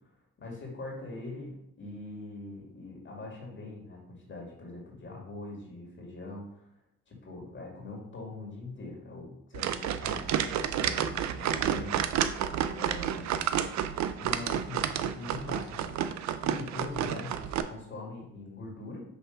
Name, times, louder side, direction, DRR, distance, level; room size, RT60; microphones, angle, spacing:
voice 1, 0.4-6.7 7.1-12.0 12.7-13.7 14.2-19.1, left 2 dB, 40° left, -2 dB, 2.1 m, -42 dB
sound 1, 9.5-17.6, right 9 dB, 65° right, 0.5 m, -30 dB
5.2 x 3.3 x 5.6 m, 0.72 s
cardioid pair, 90°, 30 cm